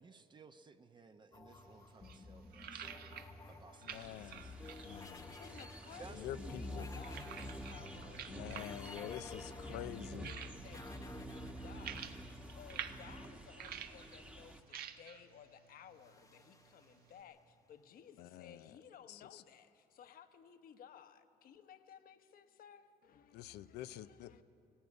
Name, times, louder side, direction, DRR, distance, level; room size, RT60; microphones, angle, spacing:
voice 1, 0.0-2.9 3.5-4.5 5.9-6.8, right 4 dB, 25° right, 8 dB, 0.8 m, -58 dB
sound 1, 1.3-13.9 15.9-17.5, left 3 dB, 20° left, 0.9 m, -54 dB
sound 2, 1.5-17.2, right 9 dB, 65° right, 1.2 m, -52 dB
voice 2, 3.8-4.5 4.8-5.4 6.1-6.9 8.3-10.4 18.2-18.8 19.1-19.4 23.3-24.4, left 13 dB, 90° left, 13 dB, 0.6 m, -47 dB
sound 3, 3.9-14.6, equal, 5° right, 1.2 m, -49 dB
voice 3, 5.4-9.2 9.7-24.4, left 8 dB, 60° left, 9 dB, 1.2 m, -58 dB
17.5 x 16.0 x 9.6 m, 2.7 s
cardioid pair, 110°, 17 cm